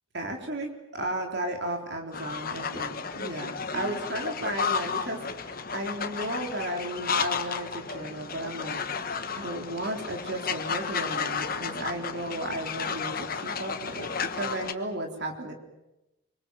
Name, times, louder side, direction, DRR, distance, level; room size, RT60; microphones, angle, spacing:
voice 1, 0.1-8.8 9.3-13.1 13.4-15.5, right 1 dB, 55° right, 2 dB, 3.8 m, -34 dB
sound 1, 2.1-14.7, left 5 dB, 45° left, 1.3 m, -33 dB
25.0 x 25.0 x 7.7 m, 0.95 s
head